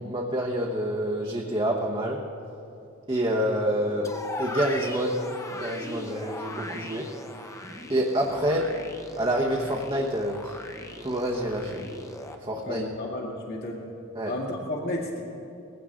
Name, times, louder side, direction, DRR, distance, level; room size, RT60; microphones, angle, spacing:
voice 1, 0.0-2.2 3.1-5.3 5.5-7.1 7.9-8.8 9.2-10.6 11.0-11.9 12.4-12.8 14.1-14.3, right 1 dB, 25° right, -1 dB, 1.0 m, -27 dB
sound 1, 4.0-12.4, left 1 dB, 15° left, 0.9 m, -38 dB
voice 2, 12.6-13.8 14.3-15.2, left 1 dB, 50° left, -2 dB, 2.1 m, -32 dB
20.0 x 16.0 x 3.8 m, 2.7 s
head